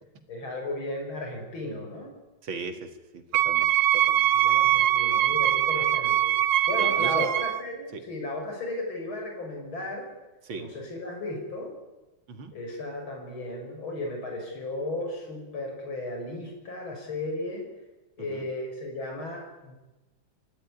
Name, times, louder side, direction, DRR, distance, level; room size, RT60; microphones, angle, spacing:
voice 1, 0.3-2.1 4.3-10.1 10.5-11.7 12.5-17.7 18.2-19.8, left 2 dB, 85° left, 2 dB, 5.8 m, -35 dB
voice 2, 2.4-4.3 6.8-7.3 7.9-8.0 10.4-10.7 12.3-12.5 18.2-18.5, right 4 dB, 85° right, 7 dB, 2.7 m, -37 dB
Wind instrument woodwind instrument, 3.3-7.6, right 12 dB, 65° right, 1.6 m, -22 dB
27.5 x 13.0 x 9.6 m, 1.1 s
omnidirectional pair, 2.2 m